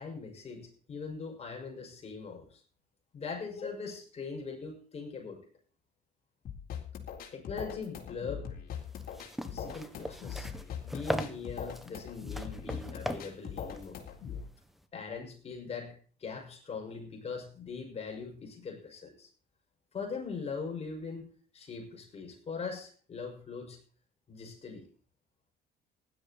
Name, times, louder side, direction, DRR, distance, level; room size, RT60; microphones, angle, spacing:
voice 1, 0.0-2.6 3.1-5.4 7.3-8.6 9.5-10.5 10.8-14.0 14.9-15.9 16.2-19.3 19.9-21.3 21.5-23.8 24.3-24.9, left 5 dB, 40° left, 2 dB, 6.0 m, -41 dB
sound 1, 6.5-14.5, left 7 dB, 60° left, 3.9 m, -41 dB
sound 2, 8.8-14.8, equal, ahead, 1.5 m, -40 dB
16.0 x 11.5 x 4.3 m, 0.41 s
cardioid pair, 110°, 17 cm